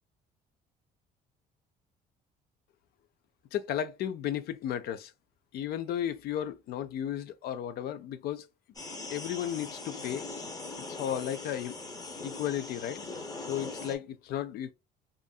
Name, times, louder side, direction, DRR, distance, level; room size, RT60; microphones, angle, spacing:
voice 1, 3.5-5.1 5.5-8.4 9.1-10.3 10.9-11.8 12.2-13.0 13.5-14.7, left 10 dB, 65° left, 0.4 m, -34 dB
sound 1, 8.8-14.0, left 3 dB, 20° left, 0.6 m, -41 dB
2.6 x 2.5 x 2.3 m
cardioid pair, 110°, 17 cm